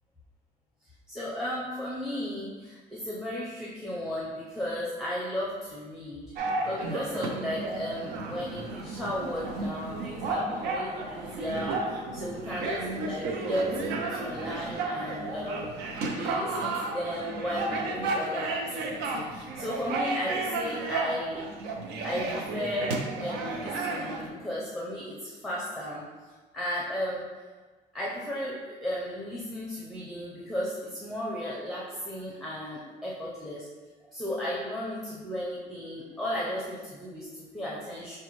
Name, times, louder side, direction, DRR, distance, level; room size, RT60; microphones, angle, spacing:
voice 1, 1.1-6.3 6.6-15.7 16.1-21.4 22.0-22.9 23.2-26.1 26.5-27.2 27.9-33.7 34.1-38.1, left 1 dB, ahead, -6 dB, 0.6 m, -35 dB
sound 1, 6.4-24.3, right 3 dB, 90° right, 0.5 m, -33 dB
5.9 x 2.2 x 3.0 m, 1.3 s
cardioid pair, 110°, 17 cm